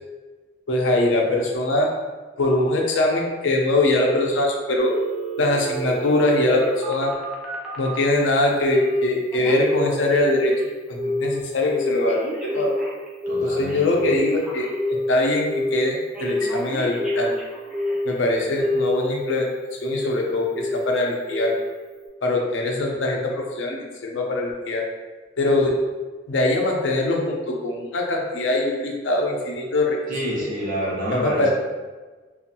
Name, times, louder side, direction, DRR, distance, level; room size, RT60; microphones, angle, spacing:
voice 1, 0.7-1.9 2.4-4.9 5.4-7.1 7.8-10.5 10.9-12.7 13.4-17.3 18.0-19.5 19.8-21.6 22.2-24.9 25.4-25.8 26.3-30.0 31.1-31.5, left 2 dB, 85° left, 0 dB, 0.5 m, -22 dB
Telephone, 4.8-8.1 8.7-9.0 9.3-10.7 11.0-11.4 11.7-15.1 15.5-15.9 16.1-18.2 18.6-19.4 19.8-20.2 20.6-20.9 21.3-21.7 22.1-22.2, left 1 dB, 5° right, 0.4 m, -27 dB
voice 2, 13.3-14.0 30.1-31.5, equal, 50° right, -5 dB, 0.9 m, -28 dB
2.6 x 2.4 x 2.7 m, 1.3 s
head